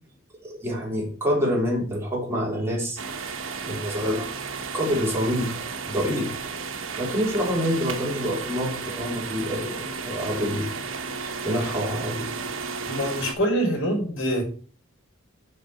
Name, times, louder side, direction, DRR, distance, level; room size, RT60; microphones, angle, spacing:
voice 1, 0.4-3.0 3.6-4.3 4.7-5.6 5.8-6.3 7.0-12.3 12.6-12.7, equal, 15° right, -3 dB, 3.5 m, -27 dB
sound 1, 3.0-13.3, right 5 dB, 70° right, 1.2 m, -33 dB
voice 2, 12.9-14.4, equal, 65° left, 0 dB, 5.0 m, -25 dB
7.7 x 6.0 x 5.5 m, 0.41 s
head